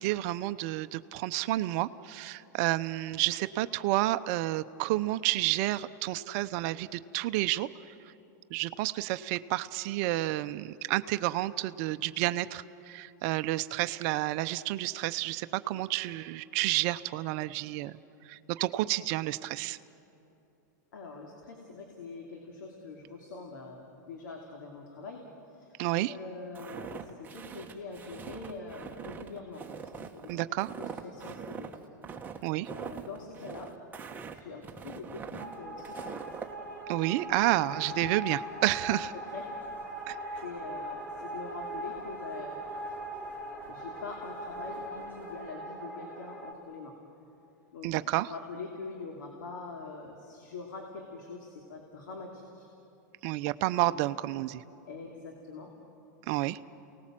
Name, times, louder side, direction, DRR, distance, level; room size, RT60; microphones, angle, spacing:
voice 1, 0.0-7.7 8.5-18.0 18.3-19.8 25.8-26.1 30.3-30.7 32.4-32.7 36.9-39.1 40.1-40.4 47.8-48.3 53.2-54.6 56.3-56.6, right 17 dB, 55° right, 13 dB, 0.7 m, -30 dB
voice 2, 20.9-25.8 26.1-29.6 30.1-30.3 30.8-31.7 32.7-33.7 34.3-36.2 36.9-37.0 37.3-37.4 39.2-39.4 40.4-42.6 43.7-46.9 47.7-52.7 54.9-55.7, left 4 dB, 85° left, 1 dB, 3.0 m, -44 dB
Walk footsteps, 26.6-36.5, right 6 dB, 20° right, 1.5 m, -42 dB
sound 1, 35.4-46.5, right 1 dB, 15° left, 3.7 m, -40 dB
29.5 x 19.0 x 7.6 m, 2.8 s
hypercardioid pair, 125°, 10 cm